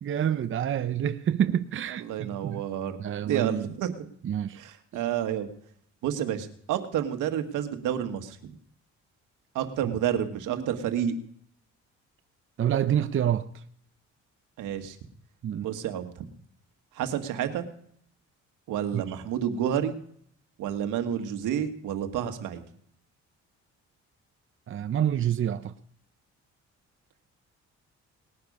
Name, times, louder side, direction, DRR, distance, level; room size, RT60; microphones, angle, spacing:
voice 1, 0.0-2.7 3.0-3.7 4.2-4.6 9.8-9.9 10.5-10.6 12.6-13.4 15.4-15.7 18.9-19.0 24.7-25.7, right 10 dB, 45° right, 0.7 m, -27 dB
voice 2, 1.9-3.0 3.2-4.1 4.6-5.5 6.0-8.5 9.5-11.1 14.6-15.0 15.6-16.2 16.9-17.7 18.7-19.9 20.6-22.6, right 9 dB, 90° right, 1.6 m, -30 dB
19.5 x 9.8 x 5.4 m
cardioid pair, 90°, 30 cm